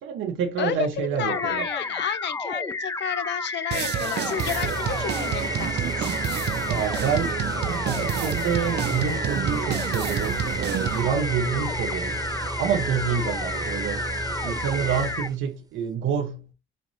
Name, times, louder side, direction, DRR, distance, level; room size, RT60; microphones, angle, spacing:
voice 1, 0.0-1.7 6.7-12.2 12.6-14.1 14.4-16.5, right 7 dB, 80° right, 0.7 m, -28 dB
voice 2, 0.6-6.2 11.5-11.6 13.1-13.3, left 9 dB, 65° left, 0.5 m, -31 dB
sound 1, 1.2-15.3, left 3 dB, 15° left, 0.4 m, -31 dB
sound 2, 3.7-11.1, right 11 dB, 60° right, 0.4 m, -29 dB
sound 3, 4.4-15.4, right 3 dB, 20° right, 0.9 m, -33 dB
5.1 x 2.5 x 3.0 m
cardioid pair, 90°, 20 cm